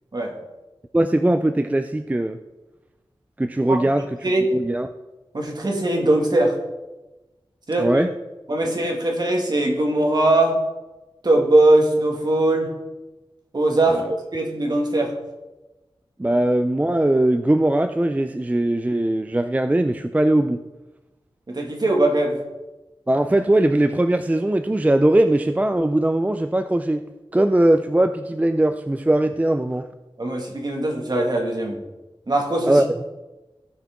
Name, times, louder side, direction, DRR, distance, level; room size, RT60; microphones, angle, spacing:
voice 1, 0.9-2.4 3.4-4.9 7.8-8.1 13.9-14.1 16.2-20.6 23.1-27.0 27.3-29.9 32.7-32.9, right 1 dB, 15° right, 8 dB, 0.4 m, -20 dB
voice 2, 5.3-6.6 7.7-7.9 8.5-10.6 11.2-12.7 13.5-14.0 14.3-15.2 16.3-16.4 21.5-22.4 30.2-31.8 32.3-32.8, right 2 dB, 45° right, 1 dB, 1.9 m, -20 dB
16.0 x 5.7 x 3.6 m, 1.1 s
wide cardioid pair, 85°, 10 cm